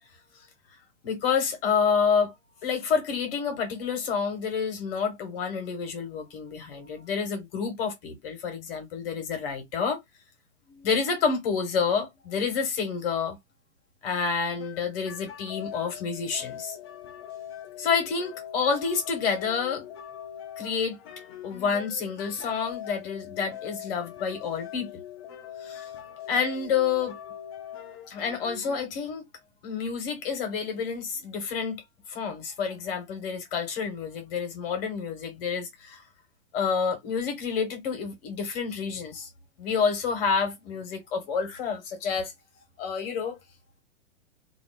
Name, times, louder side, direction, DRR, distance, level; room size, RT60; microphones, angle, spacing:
voice 1, 1.0-2.3 2.6-10.0 10.7-13.4 14.0-16.8 17.8-19.8 20.6-21.0 21.4-24.9 25.6-25.9 26.3-27.1 28.1-29.2 29.6-31.8 32.1-36.0 36.5-39.3 39.6-42.3 42.8-43.4, left 6 dB, 45° left, 1.5 m, -28 dB
sound 1, 14.6-28.8, left 10 dB, 20° left, 0.4 m, -42 dB
2.9 x 2.6 x 2.4 m
hypercardioid pair, 125°, 38 cm